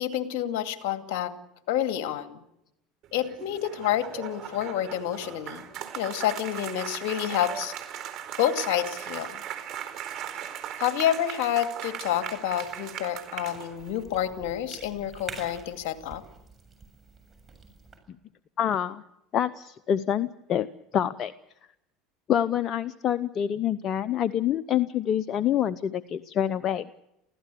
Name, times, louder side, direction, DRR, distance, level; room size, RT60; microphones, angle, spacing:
voice 1, 0.0-1.3 1.7-2.4 3.1-5.6 5.9-7.7 8.4-9.4 10.8-16.2, left 11 dB, 65° left, 8 dB, 2.3 m, -28 dB
sound 1, 3.0-14.0, right 10 dB, 55° right, 4.2 m, -38 dB
Cough / Chewing mastication, 12.0-18.0, right 4 dB, 25° right, 7.4 m, -47 dB
voice 2, 18.6-19.0 19.3-20.7 20.9-21.3 22.3-26.9, left 10 dB, 45° left, 13 dB, 0.8 m, -26 dB
24.5 x 16.0 x 8.4 m, 0.85 s
hypercardioid pair, 85°, 0 cm